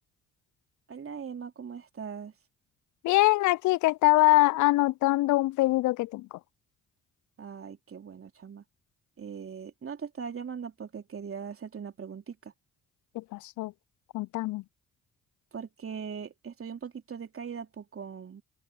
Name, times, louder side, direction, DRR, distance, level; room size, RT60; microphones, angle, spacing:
voice 1, 0.9-2.3 7.4-8.6 9.2-12.5 15.5-18.4, right 6 dB, 40° right, 3.4 m, -40 dB
voice 2, 3.0-6.3 13.1-13.7 14.1-14.6, left 18 dB, 60° left, 0.7 m, -23 dB
open air
figure-of-eight pair, 40°, 33 cm